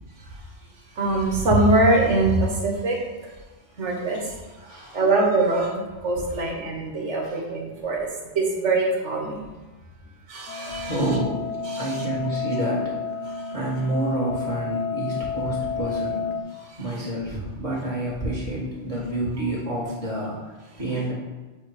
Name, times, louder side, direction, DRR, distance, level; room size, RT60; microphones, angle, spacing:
voice 1, 1.0-3.0 3.8-4.3 4.9-8.1 8.3-9.4 10.3-10.9 11.7-11.9, right 2 dB, 75° right, -1 dB, 1.5 m, -22 dB
voice 2, 4.6-5.0 6.3-6.5 7.2-7.5 10.7-11.4 11.8-13.2 13.5-16.3 16.8-21.1, right 1 dB, 30° right, -8 dB, 2.1 m, -29 dB
sound 1, 10.5-16.4, left 5 dB, 65° left, 0.9 m, -31 dB
7.6 x 2.8 x 4.8 m, 1.2 s
omnidirectional pair, 1.2 m